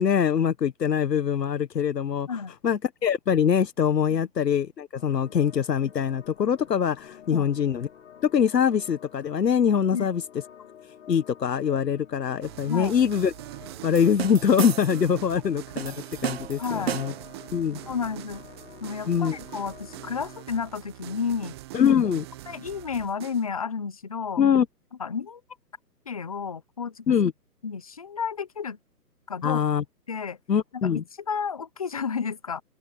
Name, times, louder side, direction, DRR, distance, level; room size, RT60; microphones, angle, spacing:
voice 1, 0.0-2.3 2.6-7.9 8.2-10.2 11.1-13.3 13.8-15.9 16.2-17.1 17.5-17.8 19.1-19.4 21.7-22.2 24.4-24.7 27.1-27.3 29.4-29.8 30.5-31.0, left 8 dB, 85° left, 1.3 m, -23 dB
sound 1, 4.9-20.5, left 8 dB, 45° left, 3.6 m, -50 dB
sound 2, 12.4-23.5, right 16 dB, 15° right, 1.1 m, -43 dB
voice 2, 12.6-12.9 16.6-17.0 17.9-18.4 18.8-21.6 22.5-24.4 25.0-25.4 26.1-27.2 27.6-28.8 29.3-29.6 30.1-30.4 30.7-32.6, left 6 dB, 25° left, 0.6 m, -32 dB
sound 3, 14.0-15.1 15.8-17.3, right 9 dB, 40° right, 1.3 m, -33 dB
open air
hypercardioid pair, 160°, 48 cm